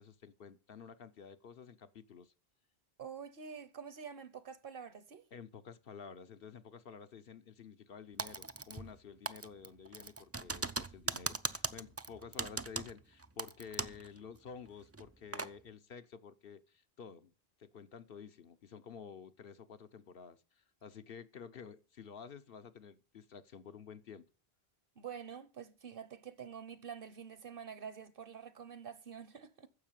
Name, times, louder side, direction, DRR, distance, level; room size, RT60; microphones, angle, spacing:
voice 1, 0.0-2.3 5.3-17.3 17.6-24.3, left 6 dB, 65° left, 1.0 m, -51 dB
voice 2, 3.0-5.2 25.0-29.7, right 7 dB, 60° right, 1.2 m, -47 dB
Typing, 8.2-9.0 9.3-14.1 14.4-14.5 14.9-15.5, right 3 dB, 25° right, 0.4 m, -39 dB
9.9 x 7.3 x 7.4 m
omnidirectional pair, 1.1 m